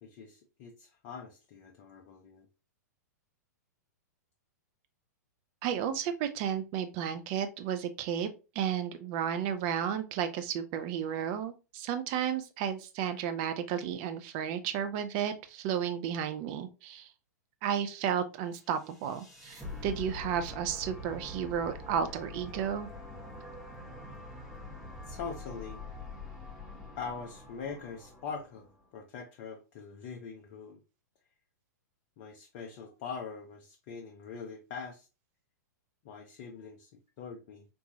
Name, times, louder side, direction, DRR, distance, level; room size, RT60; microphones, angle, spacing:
voice 1, 0.0-2.5 25.1-25.8 27.0-30.8 32.2-35.1 36.0-36.9 37.2-37.7, left 5 dB, 40° left, 0.5 m, -43 dB
voice 2, 5.6-8.3 8.6-17.1 17.6-22.9, right 8 dB, 35° right, 0.5 m, -33 dB
sound 1, 18.7-28.9, left 2 dB, ahead, 0.9 m, -45 dB
3.8 x 2.3 x 2.7 m
figure-of-eight pair, 105°, 9 cm